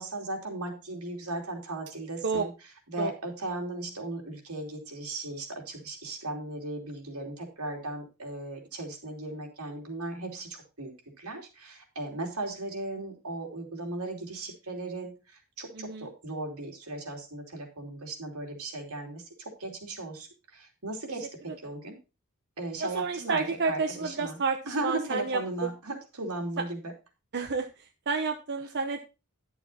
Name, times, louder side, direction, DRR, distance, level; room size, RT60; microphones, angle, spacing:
voice 1, 0.0-2.5 2.9-10.9 11.2-15.1 15.6-20.3 20.5-22.0 22.6-24.4 24.7-26.9, right 2 dB, 80° right, 1 dB, 3.1 m, -37 dB
voice 2, 15.7-16.1 22.8-24.6 24.8-25.4 27.3-27.7 28.1-29.1, right 4 dB, 50° right, 4 dB, 0.9 m, -30 dB
11.0 x 7.0 x 4.2 m, 0.29 s
head